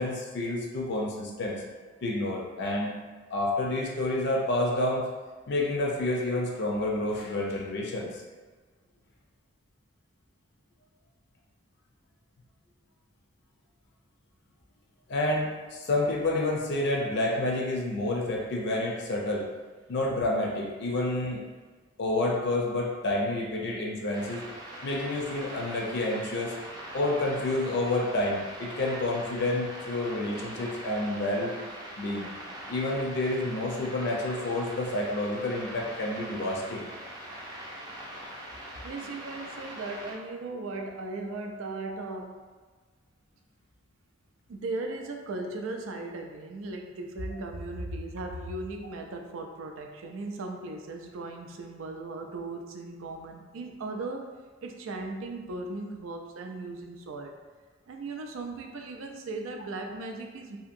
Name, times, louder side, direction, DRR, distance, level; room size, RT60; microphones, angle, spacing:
voice 1, 0.0-1.6 2.0-2.9 3.3-5.0 5.5-8.2 15.1-19.5 19.9-21.4 22.0-24.4 24.8-26.6 26.9-31.5 32.0-32.3 32.7-36.9, left 2 dB, 55° left, -1 dB, 0.5 m, -29 dB
sound 1, 24.1-40.1, right 1 dB, 20° right, 0.4 m, -42 dB
voice 2, 38.8-42.4 44.5-54.3 54.6-57.3 57.9-60.6, right 2 dB, 80° right, 3 dB, 0.4 m, -37 dB
2.8 x 2.6 x 2.5 m, 1.4 s
head